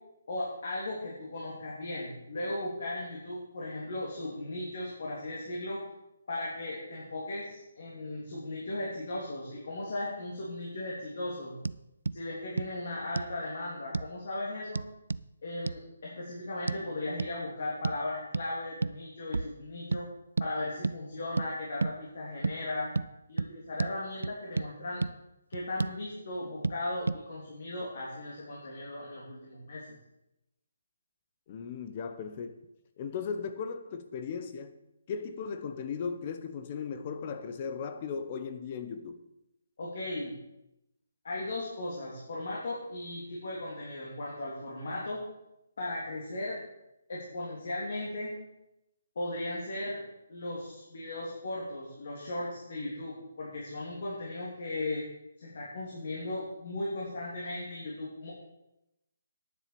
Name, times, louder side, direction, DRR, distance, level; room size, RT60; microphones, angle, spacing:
voice 1, 0.3-5.8 6.3-11.6 12.1-14.8 15.4-20.1 20.4-22.9 23.3-25.0 25.5-29.8 39.8-40.4 41.2-45.2 45.8-46.6 47.1-48.3 49.1-50.0 50.3-55.1 55.4-58.3, left 2 dB, 55° left, 3.2 m, -37 dB
sound 1, 11.6-11.8 12.1-12.2 12.6-12.7 13.2-13.4 13.9-14.1 14.8-15.3 15.7-15.8 16.7-16.8 17.2-17.3 17.8-18.0 18.3-18.5 18.8-19.0 19.3-19.5 19.9-20.0 20.4-20.5 20.8-21.0 21.4-21.5 21.8-22.0 22.4-22.6 23.0-23.1 23.4-23.5 23.8-23.9 24.2-24.7 25.0-25.1 25.5-26.0 26.6-26.8 27.1-27.2, right 3 dB, 90° right, 0.3 m, -31 dB
voice 2, 31.5-32.6 33.0-34.8 35.1-39.2, left 6 dB, 30° left, 0.9 m, -37 dB
10.0 x 7.4 x 6.8 m
hypercardioid pair, 165°, 0 cm